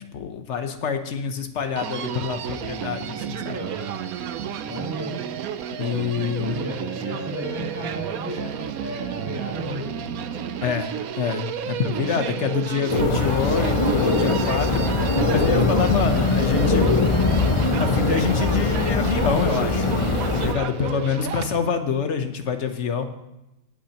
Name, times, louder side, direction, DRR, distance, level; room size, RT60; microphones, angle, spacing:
voice 1, 0.0-3.6 5.8-6.6 10.6-10.9 11.2-14.7 15.3-16.8 17.8-23.1, left 6 dB, 55° left, 7 dB, 1.2 m, -26 dB
Human voice, 1.8-21.6, right 9 dB, 90° right, 1.1 m, -32 dB
voice 2, 3.5-3.9 4.6-5.2 6.3-10.0 12.1-12.2 14.3-15.8 16.8-17.7, equal, 10° right, -6 dB, 4.2 m, -34 dB
sound 1, 12.9-20.5, left 3 dB, 30° left, 0.7 m, -21 dB
17.5 x 8.6 x 2.9 m, 0.92 s
omnidirectional pair, 1.5 m